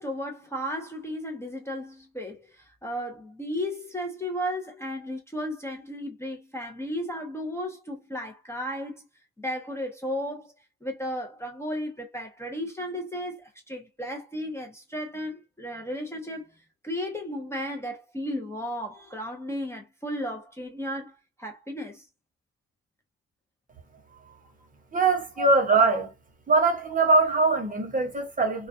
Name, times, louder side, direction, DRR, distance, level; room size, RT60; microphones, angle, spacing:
voice 1, 0.0-9.0 9.4-10.5 10.8-16.5 16.8-22.1 25.4-25.5, equal, 10° left, 0.6 m, -34 dB
voice 2, 24.9-26.1 26.5-28.7, right 3 dB, 25° right, 0.9 m, -22 dB
2.2 x 2.2 x 2.6 m
cardioid pair, 90°, 30 cm